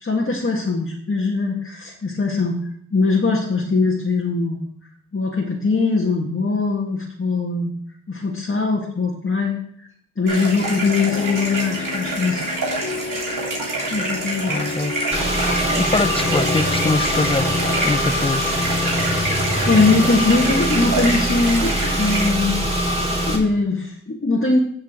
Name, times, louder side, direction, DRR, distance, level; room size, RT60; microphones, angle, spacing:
voice 1, 0.0-2.6 2.9-4.6 5.1-7.7 8.1-9.6 10.2-12.4 13.9-14.6 19.7-22.6 23.3-24.6, left 3 dB, 40° left, -3 dB, 1.8 m, -21 dB
sound 1, 10.3-22.3, right 2 dB, 75° right, 3.5 m, -27 dB
sound 2, 11.1-18.0, left 4 dB, 65° left, 2.5 m, -33 dB
voice 2, 14.5-14.9 15.8-17.5 17.8-18.4, left 3 dB, 15° left, 15 dB, 0.5 m, -23 dB
Car / Engine, 15.1-23.4, equal, 20° right, 2.8 m, -22 dB
15.0 x 5.6 x 3.7 m, 0.64 s
cardioid pair, 50°, 32 cm